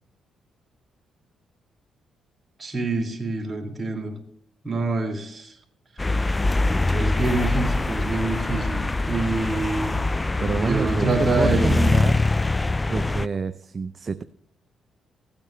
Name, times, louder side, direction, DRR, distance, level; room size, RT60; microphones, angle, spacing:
voice 1, 2.6-4.1 4.6-5.6 6.9-10.0 10.6-11.8 12.9-13.0, right 3 dB, 30° right, 2 dB, 2.9 m, -26 dB
sound 1, 6.0-13.3, left 2 dB, 20° left, 0.3 m, -23 dB
voice 2, 10.4-11.1 11.4-12.2 12.9-14.2, right 5 dB, 45° right, 11 dB, 0.6 m, -27 dB
16.0 x 8.8 x 3.2 m, 0.69 s
supercardioid pair, 65°, 0 cm